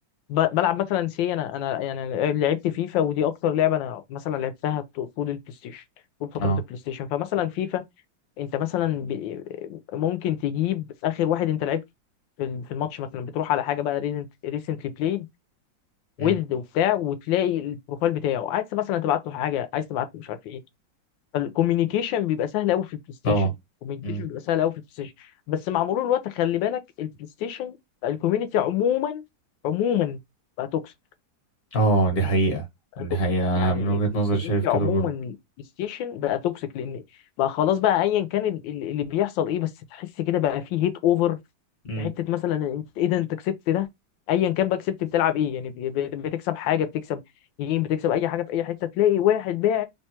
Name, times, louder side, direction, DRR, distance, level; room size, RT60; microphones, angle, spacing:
voice 1, 0.3-5.8 6.2-6.5 6.9-7.8 8.4-11.8 12.4-15.3 16.2-20.6 21.3-23.0 23.2-23.4 23.8-27.1 27.4-27.8 28.0-29.2 29.6-30.2 30.6-30.9 33.0-33.2 33.5-34.0 34.4-35.4 35.8-37.0 37.4-41.4 42.0-43.9 44.3-47.2 47.6-49.9, left 11 dB, 85° left, 1.3 m, -26 dB
voice 2, 31.7-32.6 33.0-35.1 41.8-42.1, right 2 dB, 50° left, 1.3 m, -23 dB
3.2 x 2.2 x 4.2 m
omnidirectional pair, 2.0 m